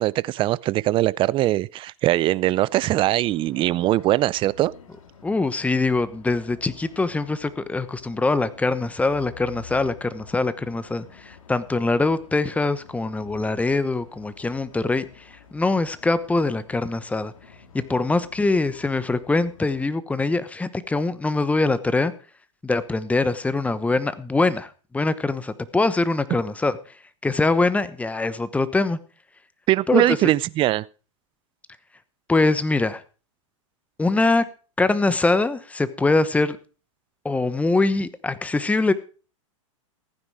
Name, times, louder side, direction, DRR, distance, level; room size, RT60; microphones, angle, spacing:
voice 1, 0.0-4.7 29.7-30.9, right 15 dB, 30° right, 0.5 m, -21 dB
sound 1, 2.8-19.9, left 7 dB, 85° left, 2.6 m, -49 dB
voice 2, 5.2-17.3 17.9-22.1 22.6-26.8 27.2-29.0 29.9-30.2 32.3-33.0 34.0-34.4 34.8-36.6 37.2-38.9, left 3 dB, 10° left, 1.0 m, -23 dB
15.0 x 9.8 x 4.7 m
hypercardioid pair, 120°, 17 cm